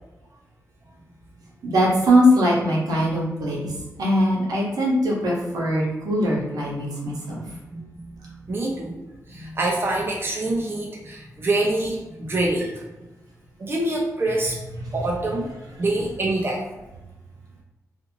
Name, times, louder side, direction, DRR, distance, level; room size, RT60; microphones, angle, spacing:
voice 1, 1.6-3.7 4.0-7.4, equal, 80° right, -4 dB, 0.9 m, -21 dB
voice 2, 7.5-8.9 9.3-12.9 13.6-14.6 14.9-16.6, right 2 dB, 40° right, -2 dB, 0.5 m, -26 dB
2.5 x 2.5 x 2.9 m, 1.1 s
cardioid pair, 75°, 6 cm